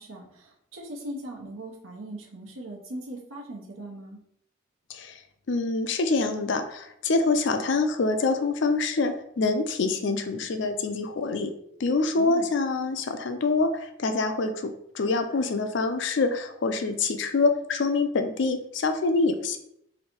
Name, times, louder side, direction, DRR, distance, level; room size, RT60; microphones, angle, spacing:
voice 1, 0.0-4.2 12.1-12.5, right 1 dB, 85° right, -2 dB, 1.0 m, -39 dB
voice 2, 5.5-11.5 11.8-19.6, left 3 dB, 60° left, 7 dB, 0.4 m, -26 dB
3.2 x 2.7 x 4.4 m, 0.73 s
head